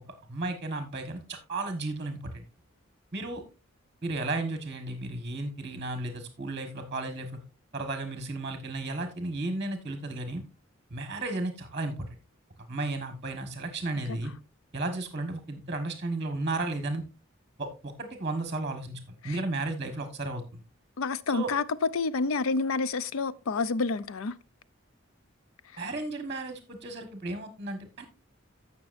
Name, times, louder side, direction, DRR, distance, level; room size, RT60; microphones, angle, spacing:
voice 1, 0.3-2.4 3.1-3.4 4.0-7.3 7.7-10.4 10.9-12.1 12.7-14.3 14.7-17.0 17.6-20.6 21.3-21.5 25.8-28.1, right 2 dB, 30° right, 1.4 m, -34 dB
voice 2, 21.0-24.3, left 4 dB, 90° left, 0.5 m, -28 dB
15.5 x 6.0 x 2.5 m
head